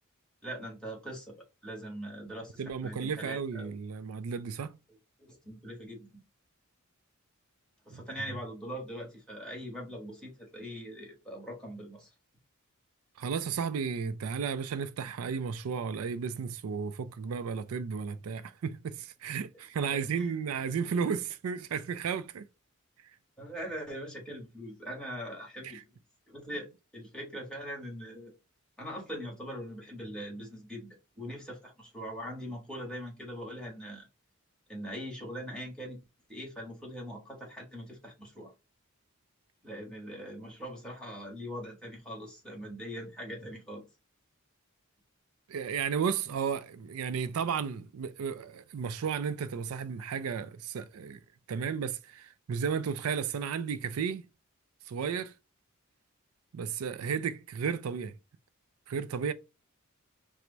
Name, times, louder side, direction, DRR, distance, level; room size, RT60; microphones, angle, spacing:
voice 1, 0.4-1.3 1.6-3.7 5.2-6.2 7.8-12.1 19.9-20.3 23.4-25.8 26.3-28.3 28.8-30.9 31.2-34.1 34.7-36.0 36.3-38.5 39.6-43.8, equal, 5° left, 1.5 m, -41 dB
voice 2, 2.6-4.7 7.9-8.0 13.2-22.5 25.6-25.8 45.5-51.2 51.5-54.3 54.9-55.3 56.5-58.2 58.9-59.3, right 6 dB, 80° right, 0.4 m, -33 dB
4.5 x 2.1 x 3.9 m
head